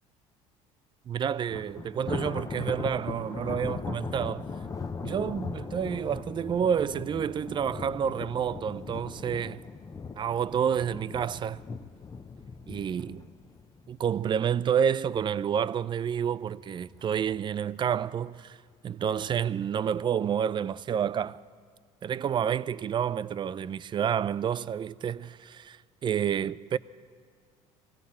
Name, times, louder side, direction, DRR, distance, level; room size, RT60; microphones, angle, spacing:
voice 1, 1.1-4.4 5.0-9.6 10.2-11.6 12.7-13.2 13.9-18.6 18.8-21.4 22.0-25.8 26.0-26.8, right 8 dB, 30° right, 0.4 m, -29 dB
Thunder, 1.5-14.8 15.1-15.4 15.8-15.9 16.8-17.4, left 4 dB, 25° left, 0.6 m, -39 dB
20.0 x 16.5 x 4.3 m
supercardioid pair, 100°, 15 cm